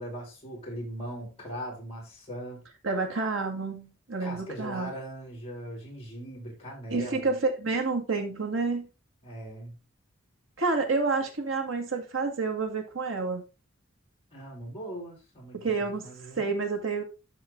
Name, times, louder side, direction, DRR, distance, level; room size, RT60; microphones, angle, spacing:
voice 1, 0.0-2.6 4.2-7.3 9.2-9.8 14.3-16.6, equal, 30° left, 4.8 m, -40 dB
voice 2, 2.8-4.9 6.9-8.9 10.6-13.4 15.5-17.0, right 4 dB, 80° right, 2.1 m, -29 dB
12.0 x 4.0 x 3.7 m
head